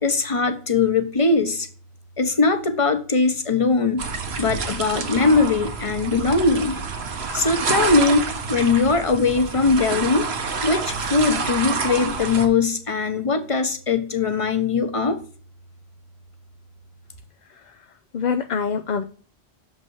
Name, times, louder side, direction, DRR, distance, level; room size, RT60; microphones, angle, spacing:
voice 1, 0.0-1.7 2.2-4.0 4.4-6.8 7.3-10.3 10.6-15.2, left 4 dB, 30° left, 8 dB, 1.0 m, -20 dB
sound 1, 4.0-12.5, right 4 dB, 70° right, 1.3 m, -28 dB
voice 2, 17.4-19.0, left 6 dB, 50° left, 8 dB, 0.6 m, -27 dB
7.0 x 5.4 x 4.6 m, 0.41 s
omnidirectional pair, 1.1 m